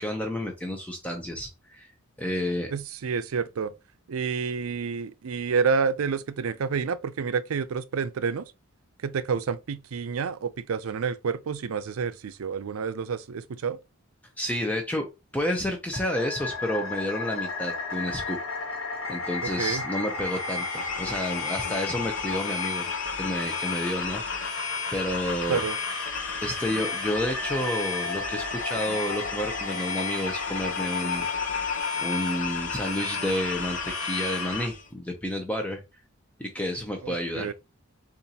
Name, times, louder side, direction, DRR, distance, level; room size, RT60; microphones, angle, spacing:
voice 1, 0.0-1.9 2.2-2.7 14.4-15.1 15.3-18.4 19.1-22.8 23.2-24.6 24.9-25.6 26.4-31.3 32.0-35.8 36.4-37.5, left 1 dB, 5° left, 0.6 m, -30 dB
voice 2, 2.7-3.7 4.1-8.5 9.0-13.8 19.6-19.8 25.5-25.8 37.0-37.5, right 5 dB, 90° right, 0.4 m, -29 dB
sound 1, 15.9-34.7, left 4 dB, 70° left, 1.3 m, -33 dB
sound 2, 20.1-34.9, left 5 dB, 40° left, 0.8 m, -36 dB
6.9 x 2.5 x 2.8 m
head